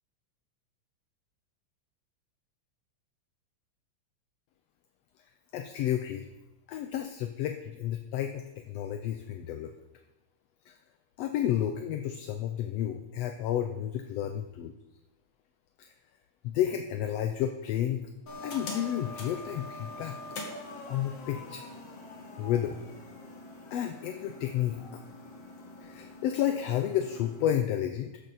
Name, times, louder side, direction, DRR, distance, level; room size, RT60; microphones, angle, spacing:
voice 1, 5.5-6.3 6.7-9.7 10.7-10.8 11.2-14.7 15.8-15.9 16.4-18.0 18.4-20.1 20.9-21.6 22.4-22.8 23.7-25.0 25.8-28.1, left 11 dB, 75° left, 6 dB, 1.6 m, -31 dB
sound 1, 18.3-27.4, left 2 dB, 55° left, 2.9 m, -44 dB
13.5 x 10.5 x 4.1 m, 0.98 s
omnidirectional pair, 3.4 m